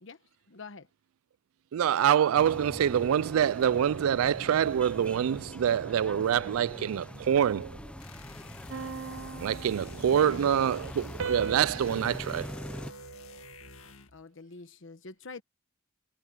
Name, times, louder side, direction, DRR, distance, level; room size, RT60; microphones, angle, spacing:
voice 1, 0.5-0.9 10.1-10.6 14.1-15.4, left 3 dB, 65° left, 1.2 m, -45 dB
voice 2, 1.7-7.8 9.4-12.5, right 9 dB, 90° right, 0.3 m, -26 dB
sound 1, 2.4-12.9, equal, 5° left, 0.7 m, -43 dB
sound 2, 8.0-14.2, left 4 dB, 85° left, 2.0 m, -50 dB
sound 3, 8.7-10.5 11.2-13.8, right 5 dB, 65° right, 0.7 m, -40 dB
head